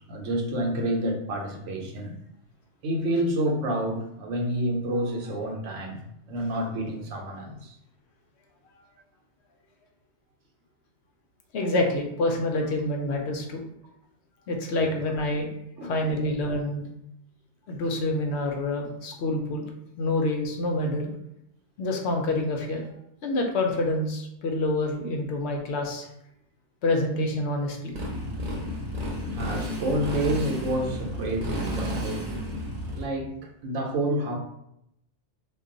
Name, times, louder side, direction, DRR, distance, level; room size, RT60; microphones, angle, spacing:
voice 1, 0.1-2.2 2.8-6.0 6.3-7.7 14.8-14.9 15.8-16.0 29.3-32.2 32.9-34.4, right 1 dB, 85° right, 1 dB, 0.9 m, -29 dB
voice 2, 11.5-13.6 14.5-15.5 15.8-16.9 17.7-19.7 20.0-21.1 21.8-22.8 23.2-26.1 26.8-27.9, left 2 dB, 70° left, 2 dB, 0.8 m, -27 dB
Motorcycle, 27.9-33.0, equal, 40° right, 0.7 m, -32 dB
2.3 x 2.3 x 3.7 m, 0.78 s
omnidirectional pair, 1.2 m